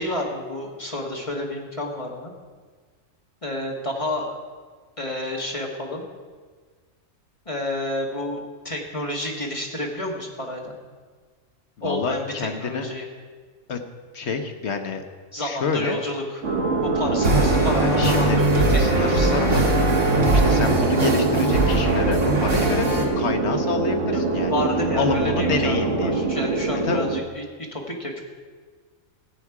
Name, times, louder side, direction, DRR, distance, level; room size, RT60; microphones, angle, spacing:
voice 1, 0.0-2.3 3.4-4.4 5.0-6.1 7.4-10.7 11.8-13.1 15.3-16.4 16.8-19.4 24.1-24.2 24.5-28.2, left 1 dB, 25° left, 0 dB, 1.5 m, -30 dB
voice 2, 11.8-12.9 13.7-13.8 14.1-15.0 15.4-16.0 17.8-18.4 18.8-19.7 20.3-24.5 25.0-26.1 26.8-27.1, left 5 dB, 60° left, 6 dB, 1.1 m, -28 dB
sound 1, 16.4-27.2, right 3 dB, 65° right, 1.4 m, -23 dB
sound 2, 17.2-23.1, right 1 dB, 90° right, 2.3 m, -22 dB
14.5 x 8.4 x 4.8 m, 1.5 s
omnidirectional pair, 1.4 m